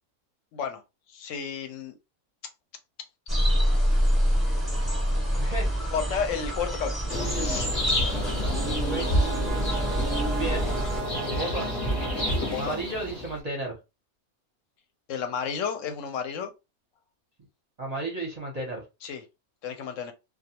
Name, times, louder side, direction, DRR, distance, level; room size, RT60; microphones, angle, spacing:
voice 1, 1.1-1.9 5.9-7.0 7.3-7.7 11.3-11.5 12.5-12.8 15.1-16.5 19.0-19.2 19.6-20.1, left 7 dB, 65° left, 0.9 m, -32 dB
sound 1, 3.3-11.0, equal, ahead, 0.9 m, -26 dB
voice 2, 5.2-5.7 8.8-9.1 10.4-10.7 11.3-11.7 12.6-13.8 17.8-18.8, right 2 dB, 40° right, 0.6 m, -33 dB
sound 2, 7.1-13.4, left 1 dB, 35° left, 0.6 m, -29 dB
Brass instrument, 7.9-12.9, right 8 dB, 80° right, 0.3 m, -38 dB
2.3 x 2.3 x 2.8 m
omnidirectional pair, 1.5 m